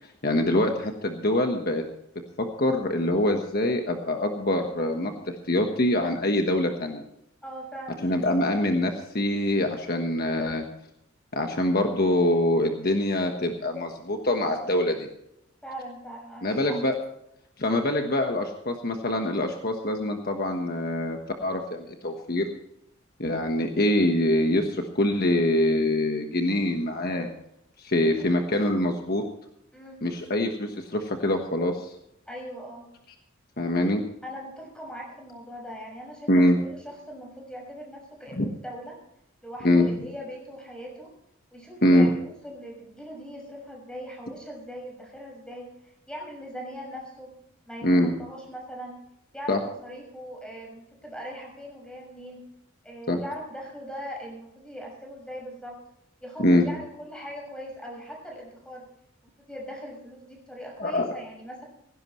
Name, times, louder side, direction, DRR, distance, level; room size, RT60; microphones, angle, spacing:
voice 1, 0.2-1.8 2.4-7.0 8.0-10.6 11.3-15.1 16.4-16.9 17.6-22.5 23.2-27.3 27.8-29.2 30.0-31.9 33.6-34.0 36.3-36.6 38.4-38.5 39.6-39.9 41.8-42.1 47.8-48.1 49.5-49.6 53.1-53.2 56.4-56.7 60.8-61.1, left 1 dB, 45° left, 4 dB, 1.3 m, -24 dB
voice 2, 7.4-8.1 15.6-16.8 28.1-28.4 29.7-30.0 32.3-32.8 34.2-39.0 39.4-41.1 41.5-47.3 47.6-49.0 49.3-52.4 52.8-55.8 56.2-58.8 59.5-61.6, equal, 5° left, -1 dB, 6.1 m, -40 dB
17.5 x 16.5 x 3.2 m, 0.79 s
head